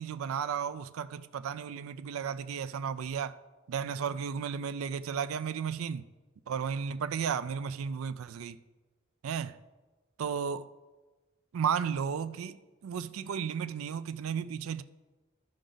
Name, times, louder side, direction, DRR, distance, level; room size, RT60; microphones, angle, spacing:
voice 1, 0.0-3.4 3.7-6.0 6.5-8.6 9.2-9.6 10.2-10.7 11.5-14.8, right 7 dB, 90° right, 0.4 m, -34 dB
14.0 x 5.0 x 3.9 m
head